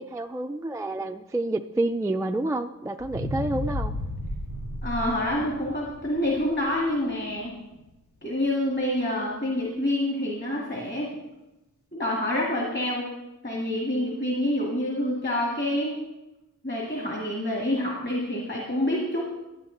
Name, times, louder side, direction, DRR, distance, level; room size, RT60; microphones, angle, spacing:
voice 1, 0.0-4.0, right 2 dB, 10° right, 6 dB, 0.3 m, -29 dB
sound 1, 3.0-7.3 7.7-7.8, left 1 dB, 60° left, 1.6 m, -33 dB
voice 2, 4.8-7.5 8.2-11.1 11.9-13.1 13.4-15.9 16.6-19.2, left 1 dB, 30° left, -3 dB, 1.9 m, -27 dB
12.5 x 8.0 x 3.9 m, 1.0 s
wide cardioid pair, 90°, 34 cm